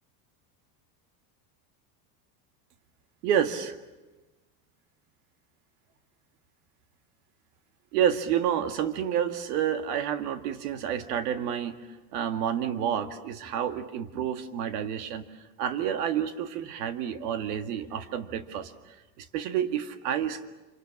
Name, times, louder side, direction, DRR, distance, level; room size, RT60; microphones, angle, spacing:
voice 1, 3.2-3.8 7.9-11.8 12.1-15.2 15.6-20.5, right 9 dB, 70° right, 9 dB, 2.0 m, -29 dB
27.5 x 26.5 x 7.2 m, 1.1 s
cardioid pair, 175°, 48 cm